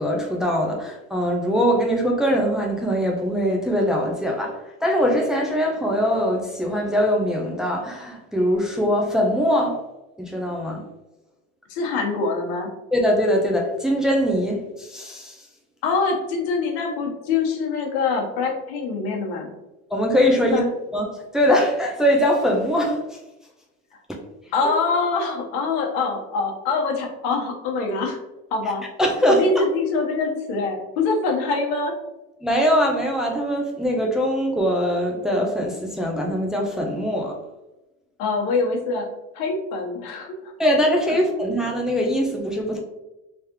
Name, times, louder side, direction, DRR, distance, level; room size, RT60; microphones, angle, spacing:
voice 1, 0.0-9.8 10.2-10.8 12.9-15.4 19.9-20.6 20.9-23.2 24.1-24.2 24.6-24.7 29.0-29.6 32.4-37.3 40.6-42.8, equal, ahead, 0 dB, 0.4 m, -22 dB
voice 2, 11.7-12.7 15.8-19.5 20.4-20.7 24.5-28.2 28.5-28.8 29.3-31.9 38.2-39.1 39.3-40.3, left 4 dB, 85° left, 1 dB, 1.1 m, -24 dB
3.4 x 3.3 x 2.9 m, 0.99 s
cardioid pair, 140°, 31 cm